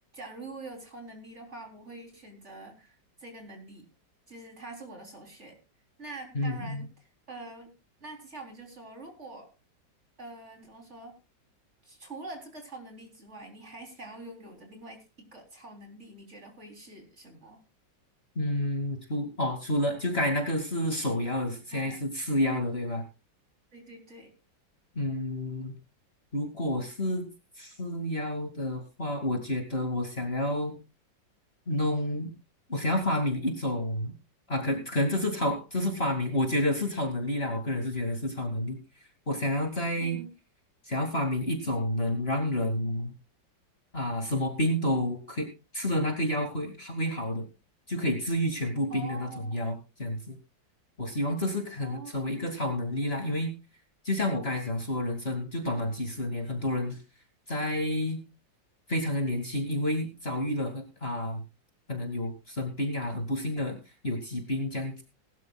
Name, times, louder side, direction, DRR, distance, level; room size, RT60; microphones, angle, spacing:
voice 1, 0.1-3.9 4.3-5.6 6.0-7.7 8.0-9.5 10.2-11.2 11.8-17.6 21.7-22.0 23.7-24.4 40.0-40.3 48.9-49.7 51.8-52.2, right 2 dB, 35° right, 3 dB, 4.0 m, -45 dB
voice 2, 6.3-6.9 18.4-23.0 24.9-25.7 26.3-27.3 27.6-30.7 31.7-32.3 32.7-34.1 34.5-38.8 39.3-40.2 40.8-43.1 43.9-45.5 45.7-47.5 47.9-50.4 51.0-53.5 54.0-57.0 57.5-58.2 58.9-61.4 61.9-63.8 64.0-65.0, left 1 dB, 30° left, 3 dB, 2.7 m, -29 dB
20.5 x 12.5 x 2.4 m, 0.30 s
omnidirectional pair, 2.1 m